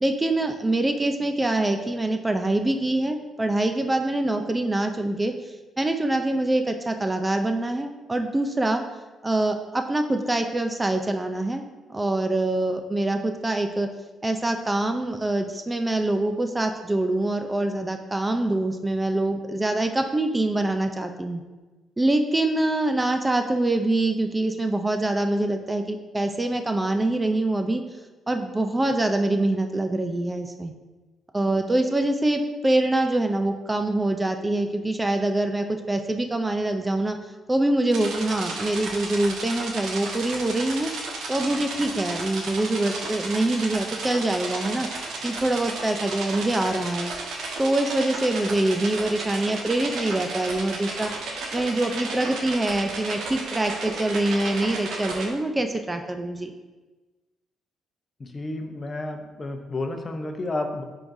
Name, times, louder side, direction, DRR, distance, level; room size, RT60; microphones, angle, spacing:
voice 1, 0.0-8.8 9.2-11.6 11.9-13.9 14.2-21.4 22.0-27.8 28.3-30.7 31.3-37.2 37.5-44.9 45.2-47.1 47.6-56.5, right 2 dB, 15° right, 6 dB, 0.4 m, -25 dB
sound 1, 37.9-55.3, right 3 dB, 80° right, 1.3 m, -33 dB
voice 2, 58.2-60.8, left 2 dB, 35° left, 5 dB, 0.7 m, -31 dB
10.5 x 3.9 x 2.6 m, 1.2 s
cardioid pair, 90°, 0 cm